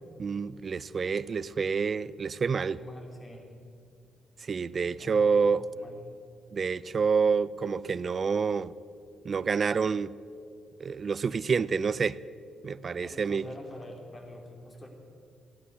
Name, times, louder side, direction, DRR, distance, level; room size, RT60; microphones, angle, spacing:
voice 1, 0.2-2.8 4.4-5.6 6.5-8.7 9.2-10.1 10.8-12.2 12.6-13.4, right 5 dB, 40° right, 0.4 m, -28 dB
voice 2, 2.7-3.5 4.8-6.0 12.9-14.9, equal, 25° left, 3.2 m, -46 dB
15.5 x 11.0 x 8.3 m
cardioid pair, 90°, 0 cm